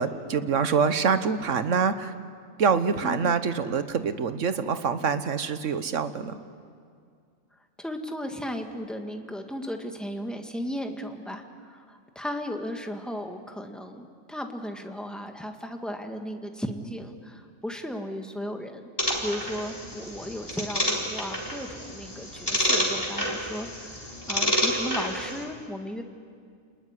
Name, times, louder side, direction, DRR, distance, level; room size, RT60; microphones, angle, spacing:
voice 1, 0.0-2.1 2.6-6.4, right 6 dB, 65° right, 11 dB, 1.4 m, -25 dB
voice 2, 3.0-3.4 7.8-18.9 19.2-26.0, equal, ahead, 4 dB, 1.8 m, -35 dB
sound 1, 19.0-25.4, equal, 15° left, 4.0 m, -29 dB
29.0 x 20.0 x 9.8 m, 2.2 s
omnidirectional pair, 1.4 m